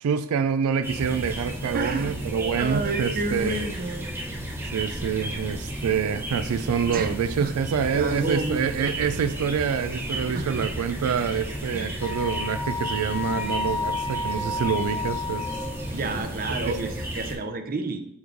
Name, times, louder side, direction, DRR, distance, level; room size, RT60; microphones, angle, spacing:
voice 1, 0.0-3.6 4.7-15.6 16.6-16.7, right 7 dB, 85° right, 10 dB, 0.3 m, -26 dB
sound 1, 0.8-17.3, right 1 dB, 10° right, 1.0 m, -33 dB
voice 2, 1.7-2.1 2.6-4.1 6.9-7.1 7.4-7.5 7.9-8.6 10.3-10.7 11.7-12.0 15.9-18.1, right 3 dB, 40° right, 7 dB, 0.6 m, -30 dB
Wind instrument woodwind instrument, 12.0-15.9, left 3 dB, 25° left, 0.8 m, -31 dB
7.1 x 3.1 x 5.0 m, 0.79 s
head